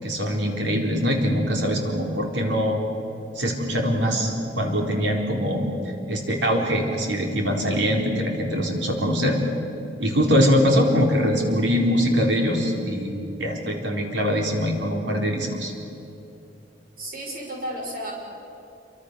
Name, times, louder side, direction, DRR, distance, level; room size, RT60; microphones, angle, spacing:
voice 1, 0.0-2.8 3.4-5.6 6.1-9.4 10.0-15.7, equal, 75° right, 1 dB, 4.2 m, -23 dB
voice 2, 17.0-18.1, right 1 dB, 50° right, -1 dB, 6.2 m, -32 dB
27.0 x 24.5 x 6.9 m, 2.9 s
head